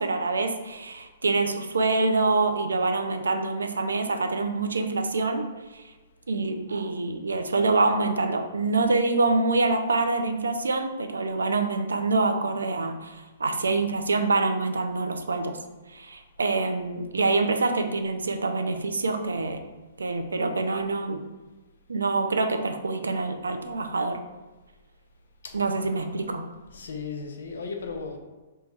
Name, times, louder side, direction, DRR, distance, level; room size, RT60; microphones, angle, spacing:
voice 1, 0.0-5.8 6.3-15.5 15.9-19.6 20.0-21.2 21.9-24.2 25.5-26.4, right 3 dB, 75° right, 6 dB, 0.4 m, -26 dB
voice 2, 25.4-26.3 26.7-28.2, left 4 dB, 65° left, 4 dB, 0.6 m, -37 dB
3.2 x 2.2 x 4.0 m, 1.2 s
figure-of-eight pair, 115°, 0 cm